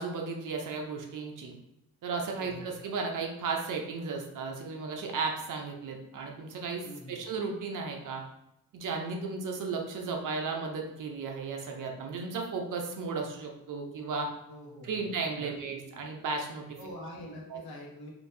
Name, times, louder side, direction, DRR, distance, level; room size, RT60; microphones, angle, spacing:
voice 1, 0.0-1.5 2.0-8.2 8.7-14.3 14.8-16.8 17.5-17.6, right 4 dB, 60° right, 2 dB, 0.6 m, -35 dB
voice 2, 2.3-2.7 6.8-7.2 14.5-15.0 15.4-15.5 16.8-18.1, equal, 75° left, -2 dB, 1.1 m, -45 dB
4.3 x 2.6 x 2.6 m, 0.84 s
wide cardioid pair, 180°, 36 cm